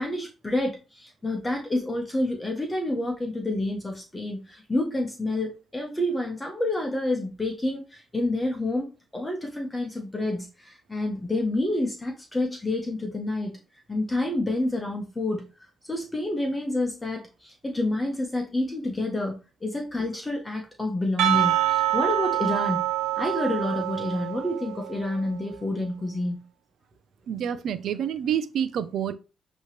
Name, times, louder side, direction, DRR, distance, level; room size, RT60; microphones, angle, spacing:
voice 1, 0.0-13.5 13.9-15.5 15.8-22.8 23.2-26.4, left 1 dB, 15° left, 1.4 m, -28 dB
Percussion, 21.2-25.1, right 14 dB, 90° right, 1.2 m, -26 dB
voice 2, 27.3-29.1, right 9 dB, 70° right, 0.7 m, -28 dB
8.5 x 3.2 x 3.4 m
cardioid pair, 90°, 0 cm